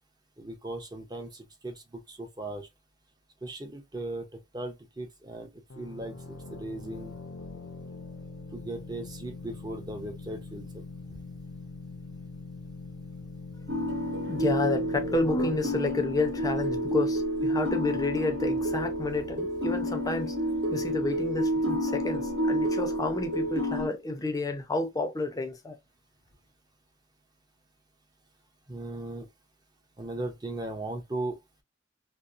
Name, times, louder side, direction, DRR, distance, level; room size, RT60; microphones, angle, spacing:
voice 1, 0.4-1.8 2.1-2.7 3.4-4.2 4.5-5.5 5.8-7.1 8.5-10.7 11.1-11.2 22.7-22.8 28.7-29.3 30.0-31.4, right 2 dB, 20° right, 0.6 m, -37 dB
sound 1, 5.7-17.2, left 3 dB, 90° left, 0.6 m, -43 dB
sound 2, 13.7-23.9, equal, 70° right, 1.1 m, -29 dB
voice 2, 14.3-20.3 20.7-25.8, left 2 dB, 20° left, 0.5 m, -30 dB
2.8 x 2.0 x 2.4 m
head